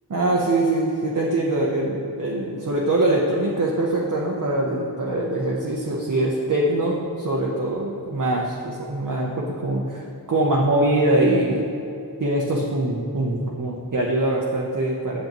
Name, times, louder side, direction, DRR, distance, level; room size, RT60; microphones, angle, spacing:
voice 1, 0.1-10.0 10.3-11.7 12.2-15.2, right 1 dB, 45° right, -3 dB, 0.8 m, -23 dB
8.0 x 7.1 x 3.0 m, 2.7 s
wide cardioid pair, 70°, 41 cm